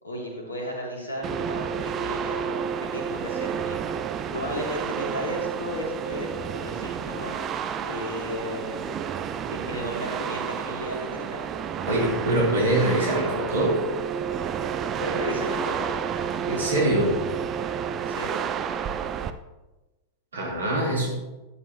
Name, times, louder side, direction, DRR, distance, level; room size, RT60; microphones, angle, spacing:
voice 1, 0.0-2.6 2.9-3.9 4.3-7.4 7.8-8.8 9.5-11.5 11.8-12.2 13.1-13.3 15.0-15.9 18.1-18.3, equal, 75° left, -2 dB, 3.2 m, -34 dB
sound 1, 1.2-19.3, right 7 dB, 30° right, 0.6 m, -30 dB
voice 2, 11.9-13.8 16.5-17.1 20.3-21.1, right 1 dB, 70° right, -3 dB, 4.0 m, -23 dB
12.0 x 10.5 x 3.2 m, 1.1 s
figure-of-eight pair, 90°, 0 cm